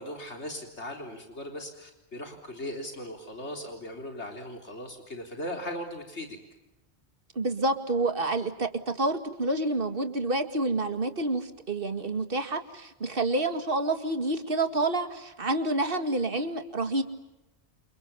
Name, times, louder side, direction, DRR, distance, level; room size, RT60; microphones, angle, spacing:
voice 1, 0.0-6.4, left 1 dB, 85° left, 3 dB, 4.2 m, -38 dB
voice 2, 7.4-17.0, right 2 dB, 55° right, 7 dB, 2.3 m, -28 dB
29.5 x 28.5 x 7.1 m, 0.94 s
omnidirectional pair, 1.1 m